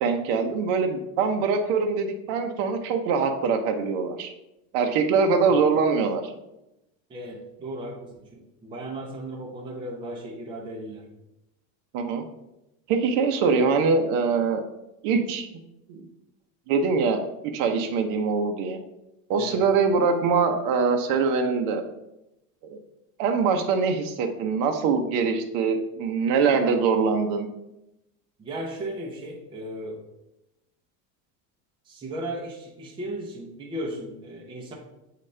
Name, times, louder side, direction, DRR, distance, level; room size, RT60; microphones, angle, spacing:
voice 1, 0.0-4.3 4.7-6.3 11.9-12.2 12.9-14.6 15.0-15.5 15.9-16.1 16.7-18.8 19.3-21.8 22.6-22.8 23.2-27.5, right 5 dB, 50° right, 4 dB, 0.7 m, -23 dB
voice 2, 7.1-11.1 19.4-19.7 28.4-30.0 31.9-34.7, right 1 dB, 10° right, -1 dB, 0.6 m, -36 dB
7.3 x 4.1 x 3.2 m, 0.90 s
cardioid pair, 170°, 42 cm